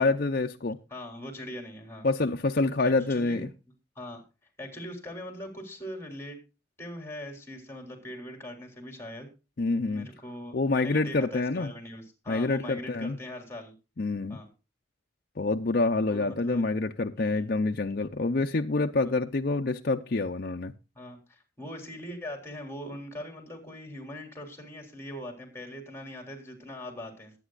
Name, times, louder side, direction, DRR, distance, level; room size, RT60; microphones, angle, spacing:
voice 1, 0.0-0.8 2.0-3.5 9.6-10.1 10.5-11.7 12.3-13.2 14.0-14.4 15.4-20.7, left 3 dB, 55° left, 0.6 m, -27 dB
voice 2, 0.9-2.1 2.8-3.5 4.0-4.2 4.6-6.4 6.8-9.3 9.9-13.7 14.3-14.5 16.1-16.6 17.2-17.4 19.0-19.1 21.0-27.3, left 1 dB, 15° left, 3.8 m, -41 dB
21.0 x 9.2 x 2.5 m
head